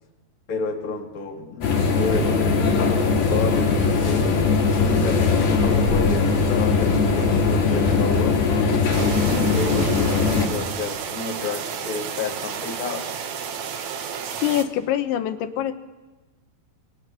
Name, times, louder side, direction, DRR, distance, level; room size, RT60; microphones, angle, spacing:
voice 1, 0.5-4.3 4.7-8.4 8.9-13.1, left 4 dB, 25° left, 1 dB, 1.9 m, -31 dB
sound 1, 1.6-10.5, left 4 dB, 50° left, 5.1 m, -20 dB
sound 2, 8.9-14.6, right 7 dB, 70° right, 1.7 m, -32 dB
voice 2, 14.3-15.7, left 11 dB, 75° left, 8 dB, 3.2 m, -24 dB
28.0 x 23.5 x 6.9 m, 1.2 s
omnidirectional pair, 5.6 m